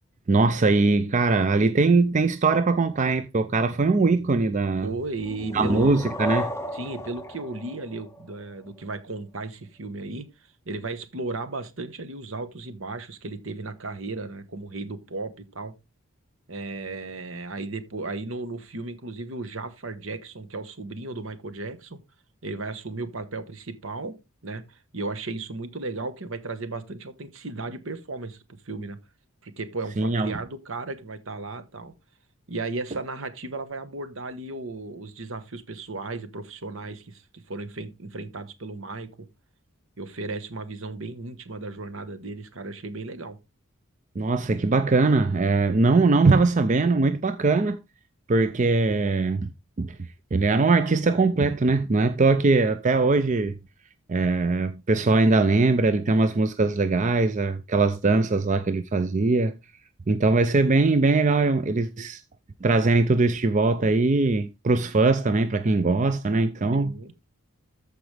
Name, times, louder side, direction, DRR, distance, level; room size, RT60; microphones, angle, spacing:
voice 1, 0.3-4.9 5.5-6.5 30.0-30.3 44.2-47.8 48.3-49.5 49.8-53.6 54.1-59.5 60.1-62.2 62.6-66.9, right 3 dB, 35° right, 0.5 m, -21 dB
voice 2, 4.8-5.8 6.7-10.3 10.6-15.7 16.5-22.0 22.4-24.2 24.4-29.0 29.4-31.9 32.5-39.1 40.0-43.4 66.7-67.1, right 3 dB, 65° right, 1.2 m, -35 dB
sound 1, 5.2-8.8, left 1 dB, 10° left, 0.7 m, -33 dB
14.0 x 4.9 x 3.3 m
head